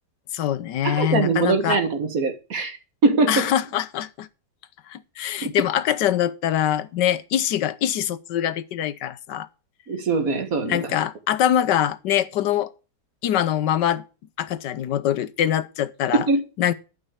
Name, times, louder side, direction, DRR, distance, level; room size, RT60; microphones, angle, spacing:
voice 1, 0.3-1.8 3.3-4.3 4.9-9.5 10.6-12.7 13.2-14.0 14.4-16.3 16.6-16.7, left 11 dB, 80° left, 1.4 m, -23 dB
voice 2, 0.8-2.8 3.0-3.5 9.9-10.9 16.3-16.4, right 3 dB, 55° right, 1.9 m, -22 dB
12.0 x 5.4 x 8.3 m
omnidirectional pair, 1.8 m